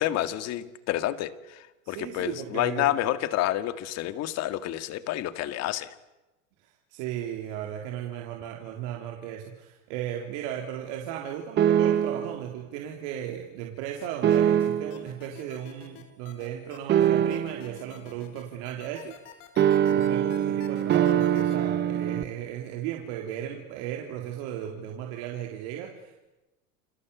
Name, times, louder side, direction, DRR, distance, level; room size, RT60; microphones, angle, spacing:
voice 1, 0.0-5.9, left 13 dB, 40° left, 12 dB, 2.1 m, -29 dB
voice 2, 1.8-3.0 6.9-19.1 19.8-26.3, right 10 dB, 55° right, 2 dB, 4.0 m, -36 dB
sound 1, 11.6-12.4 14.2-15.0 16.9-17.7 19.6-22.2, right 10 dB, 25° right, 1.3 m, -23 dB
sound 2, 14.0-21.5, left 12 dB, 70° left, 5.2 m, -48 dB
29.5 x 24.0 x 8.5 m, 1.0 s
supercardioid pair, 145°, 39 cm